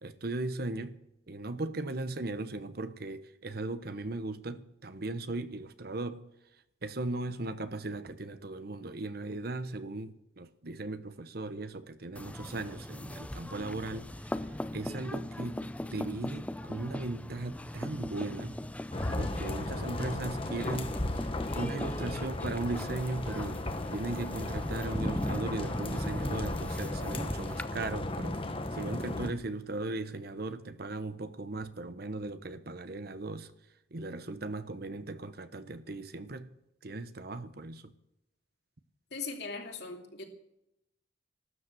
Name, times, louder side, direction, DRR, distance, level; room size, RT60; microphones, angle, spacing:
voice 1, 0.0-6.3 6.8-18.6 19.2-21.0 21.6-23.6 23.9-28.4 28.7-33.5 33.9-36.5 36.8-37.9, right 2 dB, 55° right, 1.0 m, -38 dB
sound 1, 12.1-27.7, left 1 dB, 5° left, 0.5 m, -39 dB
sound 2, 18.9-29.3, left 2 dB, 30° left, 1.2 m, -36 dB
voice 2, 39.1-40.2, left 4 dB, 60° left, 2.7 m, -39 dB
15.0 x 12.5 x 7.7 m
head